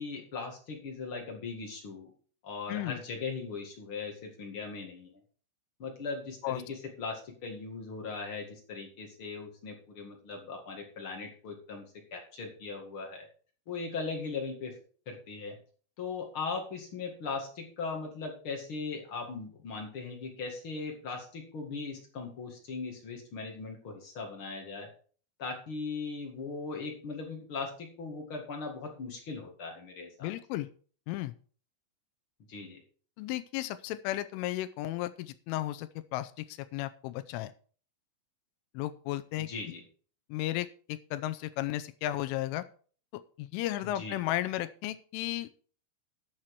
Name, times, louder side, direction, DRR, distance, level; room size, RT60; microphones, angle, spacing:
voice 1, 0.0-2.1 2.4-5.1 5.8-11.8 12.1-13.3 13.7-14.8 15.0-15.6 16.0-24.9 25.4-30.3 32.5-32.8 39.4-39.8 43.8-44.2, left 4 dB, 70° left, 1 dB, 1.2 m, -39 dB
voice 2, 2.7-3.0 6.4-6.6 30.2-30.7 31.1-31.3 33.2-37.5 38.7-39.5 40.3-42.7 43.1-45.5, left 15 dB, 85° left, 12 dB, 3.1 m, -34 dB
11.5 x 7.4 x 4.7 m, 0.42 s
omnidirectional pair, 5.8 m